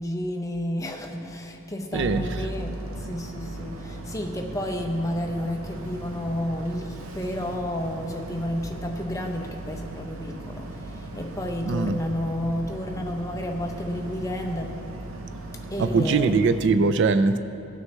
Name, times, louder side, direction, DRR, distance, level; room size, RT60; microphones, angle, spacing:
voice 1, 0.0-14.8 15.7-16.4, left 1 dB, 15° left, 2 dB, 0.7 m, -31 dB
voice 2, 1.9-2.3 11.7-12.0 15.8-17.4, right 4 dB, 55° right, 11 dB, 0.3 m, -21 dB
Boat Water vehicle, 1.9-16.6, right 1 dB, 75° right, 0.8 m, -37 dB
17.5 x 6.4 x 3.2 m, 2.6 s
head